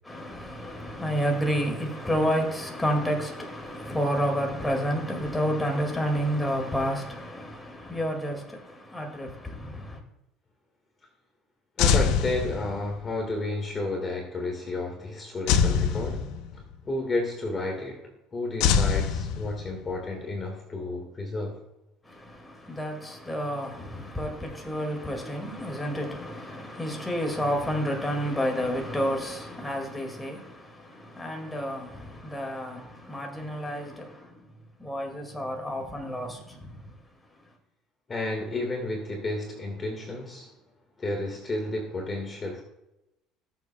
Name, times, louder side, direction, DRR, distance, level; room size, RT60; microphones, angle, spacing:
voice 1, 0.0-10.0 22.0-34.5 34.8-37.0, equal, 5° left, 2.0 m, -30 dB
sound 1, 11.8-13.1 15.5-16.7 18.6-19.9, left 7 dB, 70° left, 0.8 m, -24 dB
voice 2, 11.8-21.6 38.1-40.5 41.0-42.6, left 2 dB, 20° left, 1.6 m, -32 dB
19.5 x 7.2 x 2.2 m
cardioid pair, 145°, 0 cm